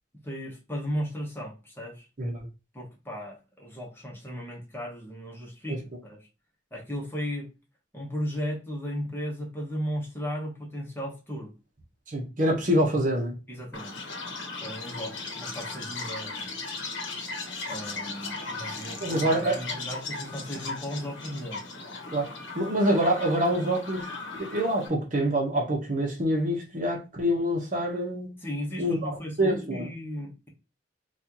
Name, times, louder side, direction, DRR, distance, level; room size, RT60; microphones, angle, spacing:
voice 1, 0.2-2.1 2.7-6.2 6.7-7.5 7.9-11.5 13.5-14.0 14.3-16.5 17.7-21.6 28.4-30.5, equal, 10° left, 1.0 m, -36 dB
voice 2, 12.1-13.3 19.0-19.8 22.1-28.4 28.8-29.1 29.4-29.9, right 1 dB, 45° right, 0.9 m, -26 dB
Chirp tweet, 13.7-24.9, left 3 dB, 80° left, 0.9 m, -37 dB
4.2 x 2.4 x 2.8 m
head